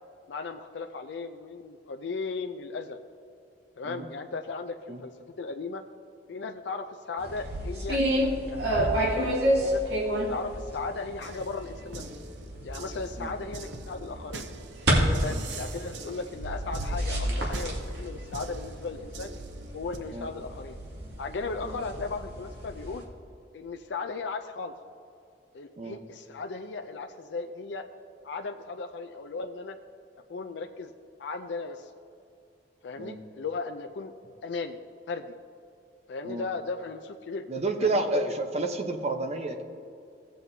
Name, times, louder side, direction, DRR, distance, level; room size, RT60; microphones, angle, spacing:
voice 1, 0.3-3.0 3.8-5.8 6.3-8.0 8.5-9.8 10.2-12.0 12.6-14.5 15.2-19.3 19.7-20.8 21.2-23.0 23.5-24.8 25.5-27.8 28.2-29.8 30.3-30.9 31.2-31.9 32.8-34.1 34.4-34.8 35.1-35.3 36.1-37.5 37.8-38.1, left 4 dB, 75° left, 4 dB, 0.4 m, -36 dB
sound 1, 7.2-23.0, equal, 65° right, 2.1 m, -30 dB
sound 2, 11.2-20.0, right 3 dB, 85° right, 0.7 m, -44 dB
voice 2, 37.5-39.6, right 2 dB, 40° right, 6 dB, 0.8 m, -30 dB
17.0 x 7.7 x 2.7 m, 2.6 s
head